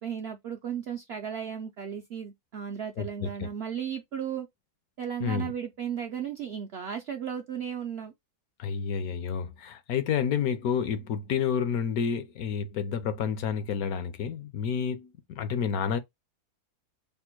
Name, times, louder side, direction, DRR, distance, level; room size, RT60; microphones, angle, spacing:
voice 1, 0.0-4.5 5.0-8.1, right 8 dB, 70° right, 0.6 m, -35 dB
voice 2, 3.0-3.5 5.2-5.5 8.6-16.0, left 7 dB, 75° left, 1.1 m, -30 dB
3.4 x 2.1 x 4.3 m
omnidirectional pair, 1.6 m